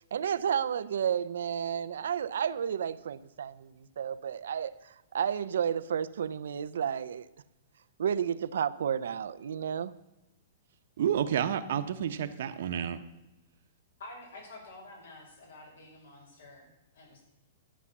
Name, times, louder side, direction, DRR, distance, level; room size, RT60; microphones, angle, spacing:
voice 1, 0.1-7.3 8.0-9.9, right 8 dB, 85° right, 0.6 m, -32 dB
voice 2, 11.0-13.0, right 9 dB, 60° right, 1.0 m, -30 dB
voice 3, 14.0-17.2, left 2 dB, 80° left, 5.7 m, -49 dB
12.5 x 7.3 x 7.1 m
hypercardioid pair, 170°, 0 cm